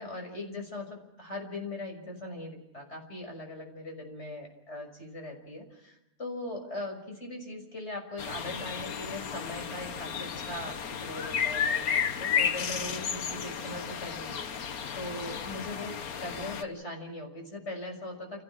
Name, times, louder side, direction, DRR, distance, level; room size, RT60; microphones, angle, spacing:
voice 1, 0.0-18.4, left 1 dB, 50° left, 2 dB, 6.5 m, -40 dB
sound 1, 8.2-16.6, left 7 dB, 90° left, 1.6 m, -33 dB
30.0 x 16.0 x 6.3 m, 0.86 s
omnidirectional pair, 1.5 m